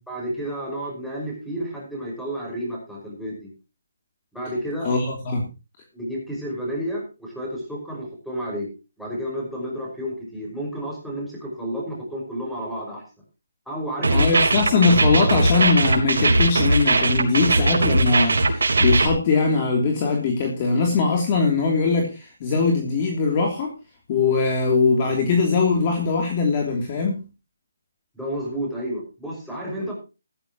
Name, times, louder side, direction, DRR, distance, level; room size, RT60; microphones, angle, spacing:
voice 1, 0.1-3.5 4.3-4.9 5.9-8.7 9.0-13.0 13.7-14.4 28.1-29.9, equal, ahead, -3 dB, 5.7 m, -31 dB
voice 2, 4.8-5.4 14.1-23.7 24.1-27.2, left 4 dB, 30° left, 1 dB, 3.1 m, -21 dB
sound 1, 14.0-19.1, right 2 dB, 75° right, 3.9 m, -19 dB
15.0 x 14.0 x 3.0 m, 0.30 s
hypercardioid pair, 165°, 0 cm